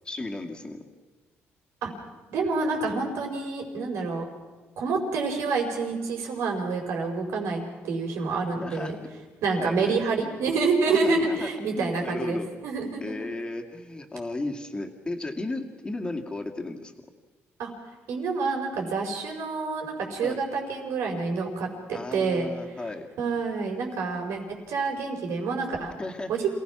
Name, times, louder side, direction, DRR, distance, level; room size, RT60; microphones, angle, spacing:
voice 1, 0.0-0.8 8.6-8.9 9.6-10.0 10.9-12.5 13.0-16.9 20.2-20.4 21.9-23.1 26.0-26.3, left 2 dB, 20° left, 3 dB, 2.4 m, -34 dB
voice 2, 2.3-4.2 4.8-9.0 9.4-13.3 17.6-17.7 18.1-22.5 23.2-24.4 24.7-25.9 26.3-26.5, right 4 dB, 80° right, 2 dB, 5.0 m, -28 dB
27.5 x 17.5 x 6.1 m, 1.3 s
cardioid pair, 105°, 5 cm